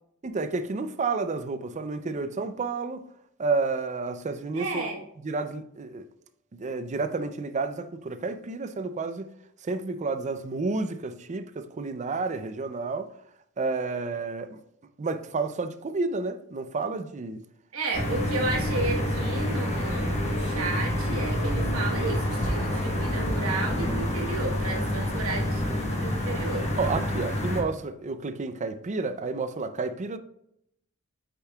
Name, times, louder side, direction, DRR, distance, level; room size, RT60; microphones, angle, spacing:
voice 1, 0.2-3.1 3.4-4.8 5.2-6.0 6.5-9.3 9.6-13.1 13.6-14.6 15.0-17.4 26.8-30.2, right 3 dB, 35° right, 0.4 m, -30 dB
voice 2, 4.5-5.0 17.7-26.7, right 3 dB, 70° right, 1.3 m, -33 dB
sound 1, 17.9-27.6, left 1 dB, 30° left, 1.1 m, -28 dB
8.7 x 5.2 x 2.3 m
head